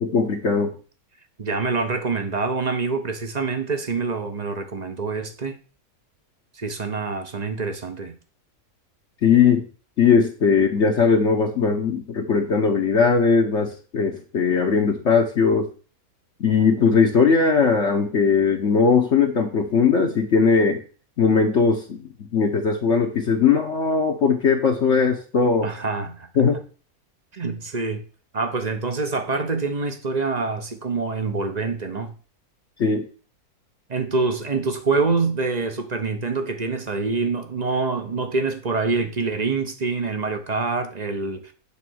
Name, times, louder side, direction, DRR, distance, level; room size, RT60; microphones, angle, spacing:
voice 1, 0.0-0.7 9.2-9.6 10.0-15.7 16.4-20.8 21.2-22.0 22.3-25.7 26.4-26.6 32.8-33.1, left 5 dB, 55° left, 1.2 m, -19 dB
voice 2, 1.4-5.6 6.6-8.1 25.6-26.3 27.3-28.0 28.3-32.1 33.9-41.5, right 4 dB, 35° right, 0.8 m, -26 dB
8.5 x 3.9 x 6.3 m
omnidirectional pair, 1.6 m